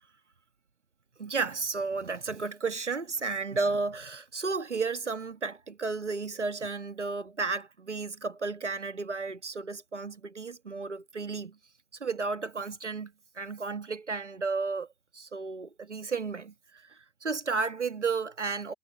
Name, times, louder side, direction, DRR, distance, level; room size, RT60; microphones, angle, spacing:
voice 1, 1.2-11.6 12.0-14.9 15.1-18.7, right 4 dB, 85° right, 1.7 m, -33 dB
figure-of-eight pair, 80°, 34 cm